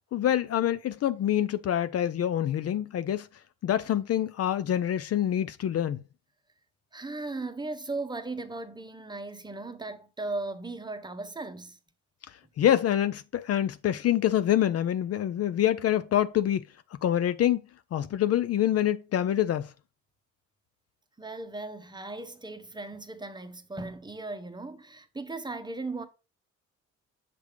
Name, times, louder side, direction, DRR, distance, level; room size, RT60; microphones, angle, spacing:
voice 1, 0.1-3.3 3.6-6.0 12.6-16.6 17.0-17.6 17.9-19.7, left 11 dB, 55° left, 0.5 m, -26 dB
voice 2, 6.9-11.8 21.2-26.1, right 3 dB, 15° right, 0.8 m, -37 dB
6.7 x 3.4 x 4.9 m
cardioid pair, 90°, 30 cm